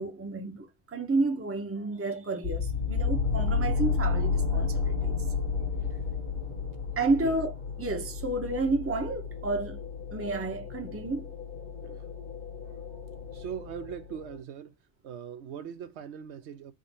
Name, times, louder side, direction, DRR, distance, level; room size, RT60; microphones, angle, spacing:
voice 1, 0.0-5.2 7.0-7.5 7.8-9.8 10.1-11.2, right 2 dB, 15° right, 0.6 m, -30 dB
sound 1, 2.4-14.4, left 5 dB, 50° left, 1.1 m, -32 dB
voice 2, 13.3-14.8 15.0-16.7, right 8 dB, 75° right, 0.9 m, -40 dB
3.7 x 2.5 x 4.1 m
omnidirectional pair, 1.2 m